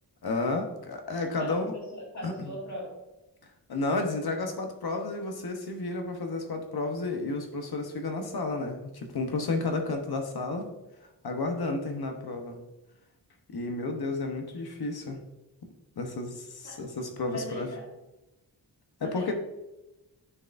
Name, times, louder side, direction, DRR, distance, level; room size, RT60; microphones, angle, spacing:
voice 1, 0.2-1.7 2.2-2.5 3.7-10.7 11.2-12.6 13.5-15.2 16.0-17.7 19.0-19.3, left 3 dB, 60° left, 5 dB, 1.0 m, -32 dB
voice 2, 1.4-3.0 16.6-16.8 17.3-17.9 19.0-19.3, equal, 40° left, -3 dB, 2.1 m, -39 dB
9.8 x 4.7 x 2.5 m, 1.0 s
wide cardioid pair, 135°, 42 cm